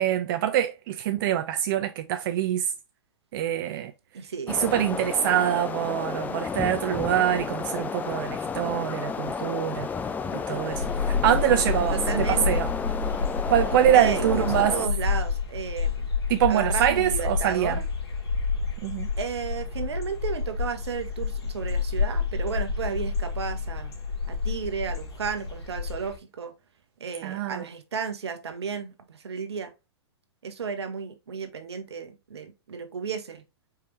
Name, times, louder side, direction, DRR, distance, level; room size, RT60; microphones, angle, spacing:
voice 1, 0.0-2.7 3.3-3.9 4.5-9.9 10.3-12.7 13.5-14.8 16.3-17.8 18.8-19.1 27.2-27.6, right 11 dB, 50° right, 0.5 m, -24 dB
voice 2, 4.1-4.6 11.9-12.5 13.9-16.1 16.5-17.8 19.2-23.9 24.3-26.5 27.0-29.7 30.4-33.4, right 6 dB, 75° right, 1.1 m, -33 dB
sound 1, 4.5-14.9, left 5 dB, 10° left, 0.4 m, -32 dB
sound 2, 10.7-26.2, left 5 dB, 70° left, 2.1 m, -29 dB
4.7 x 3.3 x 3.0 m
hypercardioid pair, 110°, 14 cm